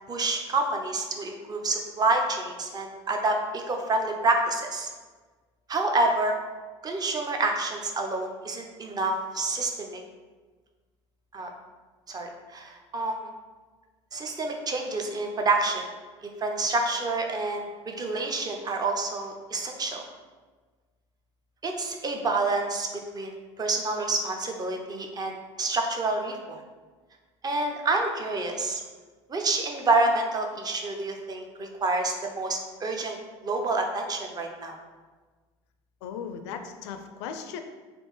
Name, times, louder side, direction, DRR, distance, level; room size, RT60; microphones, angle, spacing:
voice 1, 0.1-4.9 5.7-6.4 6.8-10.0 11.3-11.5 12.1-13.3 14.1-15.9 16.2-20.1 21.6-22.9 23.1-26.6 27.4-28.8 29.3-33.2 33.4-34.8, right 2 dB, 25° right, 3 dB, 0.6 m, -28 dB
voice 2, 36.0-37.6, left 7 dB, 70° left, 7 dB, 0.4 m, -37 dB
3.4 x 2.4 x 3.1 m, 1.3 s
hypercardioid pair, 70°, 15 cm